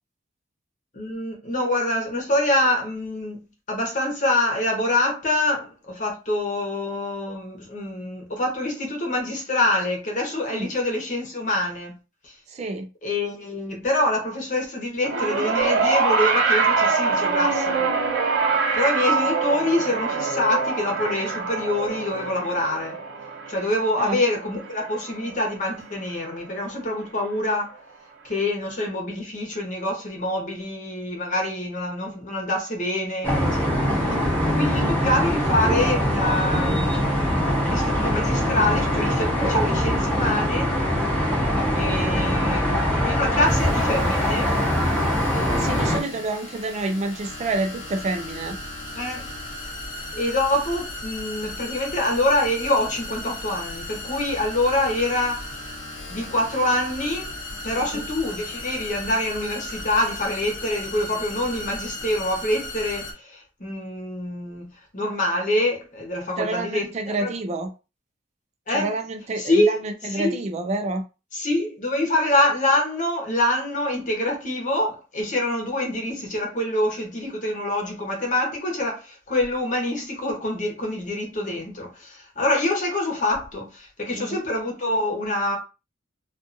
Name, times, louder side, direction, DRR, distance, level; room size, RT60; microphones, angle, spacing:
voice 1, 0.9-3.4 3.7-11.9 12.2-12.3 13.0-17.9 18.7-23.0 23.5-27.7 28.2-33.7 34.0-34.1 34.5-40.7 41.7-44.5 45.3-46.2 49.0-49.3 50.1-55.4 56.1-57.3 57.6-64.7 64.9-67.3 68.7-68.9 69.4-69.8 70.1-70.4 71.3-85.6, left 1 dB, 40° left, 0.9 m, -25 dB
voice 2, 10.4-10.7 12.5-12.9 24.0-24.2 33.8-34.3 45.5-48.6 57.8-58.0 66.4-67.7 68.7-71.0 84.1-84.4, right 2 dB, 35° right, 0.3 m, -29 dB
sound 1, 15.0-25.5 26.5-26.6, right 4 dB, 65° right, 0.7 m, -24 dB
sound 2, 33.2-46.0, equal, 10° left, 0.8 m, -22 dB
sound 3, 43.4-63.1, left 2 dB, 70° left, 0.9 m, -36 dB
2.5 x 2.5 x 2.5 m
head